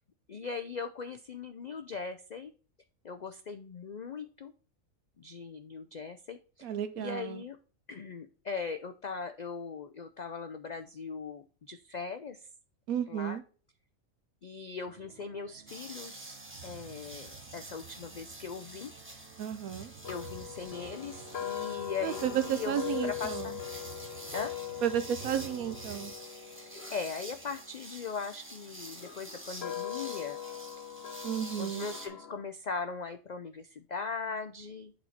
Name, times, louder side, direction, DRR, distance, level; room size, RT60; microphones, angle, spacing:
voice 1, 0.3-2.5 3.0-4.5 5.2-7.6 7.9-12.5 13.1-13.4 14.4-18.9 20.1-23.5 24.3-24.5 26.9-30.4 31.6-34.9, left 5 dB, 70° left, 0.4 m, -39 dB
voice 2, 6.6-7.4 12.9-13.4 19.4-19.9 22.0-23.5 24.8-26.1 31.2-31.9, right 10 dB, 85° right, 1.1 m, -32 dB
sound 1, 14.9-26.2, right 9 dB, 65° right, 1.1 m, -51 dB
sound 2, 15.7-32.1, right 1 dB, 10° right, 1.4 m, -48 dB
sound 3, 20.0-28.2 28.9-32.4, left 10 dB, 55° left, 1.0 m, -41 dB
8.6 x 4.2 x 4.2 m
omnidirectional pair, 1.4 m